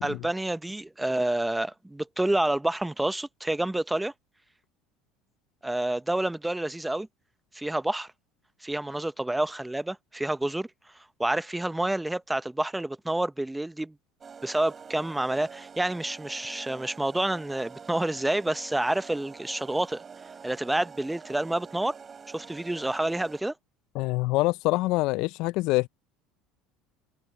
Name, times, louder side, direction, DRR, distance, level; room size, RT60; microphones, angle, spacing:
voice 1, 0.0-4.1 5.6-7.1 7.5-8.1 8.6-10.7 11.2-13.9 14.4-20.0 20.4-21.9 22.3-23.5, right 1 dB, 10° right, 0.7 m, -28 dB
sound 1, 14.2-23.4, right 6 dB, 30° right, 4.3 m, -46 dB
voice 2, 23.9-25.9, left 20 dB, 70° left, 0.4 m, -25 dB
supercardioid pair, 90°, 0 cm